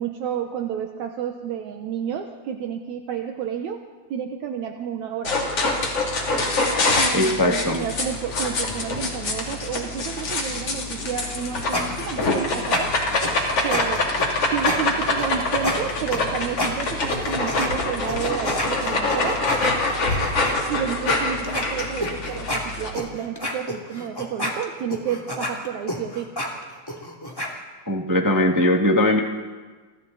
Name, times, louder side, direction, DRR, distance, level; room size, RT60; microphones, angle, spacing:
voice 1, 0.0-3.8 4.1-5.4 6.9-13.0 13.6-14.1 14.5-19.5 20.7-26.3, right 8 dB, 70° right, 4 dB, 2.3 m, -30 dB
sound 1, 5.2-22.9, left 2 dB, 45° left, 3.9 m, -25 dB
voice 2, 7.1-7.8 27.9-29.2, left 1 dB, 10° right, 2 dB, 0.9 m, -20 dB
sound 2, 11.3-17.7 18.1-20.5 21.1-21.2 21.4-27.5, left 1 dB, 10° left, 2.3 m, -29 dB
29.5 x 25.5 x 4.1 m, 1.4 s
omnidirectional pair, 3.6 m